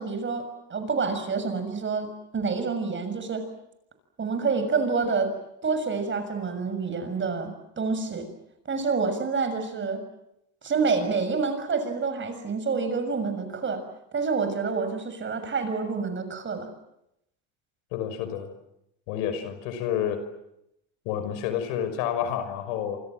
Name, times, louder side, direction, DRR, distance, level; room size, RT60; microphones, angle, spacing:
voice 1, 0.0-3.5 4.2-5.3 5.6-8.3 8.7-10.0 10.6-13.8 14.1-16.7, right 4 dB, 30° right, 9 dB, 6.7 m, -28 dB
voice 2, 17.9-18.5 19.1-20.2 21.0-23.0, left 9 dB, 90° left, 10 dB, 5.9 m, -29 dB
28.0 x 26.0 x 7.7 m, 0.82 s
cardioid pair, 115°, 37 cm